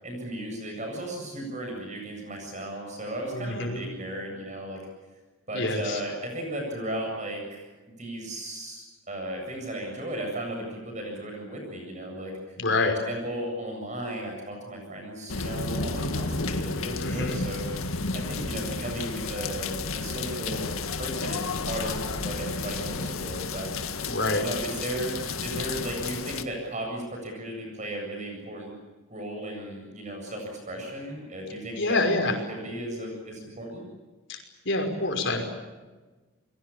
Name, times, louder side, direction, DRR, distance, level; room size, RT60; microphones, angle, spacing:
voice 1, 0.0-4.9 5.5-7.6 7.9-12.4 13.0-17.7 18.1-23.8 24.4-28.7 29.1-33.8, right 1 dB, 35° right, 2 dB, 7.8 m, -35 dB
voice 2, 3.3-3.8 5.5-6.0 12.6-13.0 17.0-17.4 24.0-24.4 31.8-32.3 34.3-34.4 34.6-35.4, left 2 dB, 55° left, 4 dB, 5.8 m, -26 dB
sound 1, 15.3-26.4, left 3 dB, 85° left, 2.0 m, -32 dB
30.0 x 23.0 x 7.3 m, 1.2 s
head